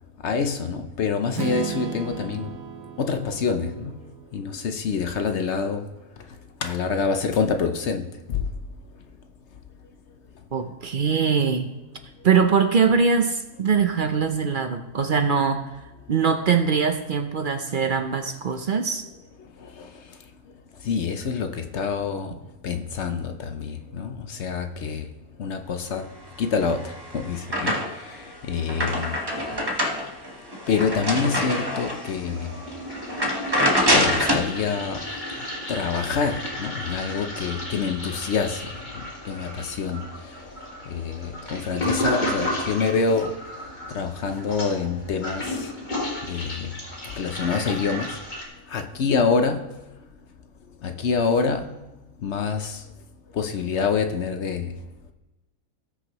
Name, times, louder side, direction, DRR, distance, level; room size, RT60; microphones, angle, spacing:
voice 1, 0.2-2.5 3.0-3.9 4.3-5.8 6.6-8.1 19.8-19.9 20.9-22.3 22.6-25.1 25.4-26.1 26.4-27.7 28.4-29.1 30.7-32.5 33.9-35.0 35.7-38.6 39.0-40.0 40.9-43.4 43.9-45.6 46.3-46.7 47.1-48.1 48.7-49.6 50.8-51.7 52.2-52.8 53.4-54.7, left 5 dB, 60° left, 7 dB, 0.9 m, -26 dB
Strum, 1.3-5.3, right 7 dB, 80° right, 1.3 m, -35 dB
voice 2, 10.5-11.7 12.2-15.6 16.1-19.1, right 6 dB, 50° right, 6 dB, 0.6 m, -22 dB
sound 1, 26.6-28.1 28.5-32.1 32.6-32.7 33.1-34.5, equal, 20° right, 1.1 m, -24 dB
Toilet flush, 30.9-31.7 32.0-48.5, left 1 dB, 35° left, 2.0 m, -33 dB
18.0 x 6.2 x 3.0 m, 1.1 s
omnidirectional pair, 1.5 m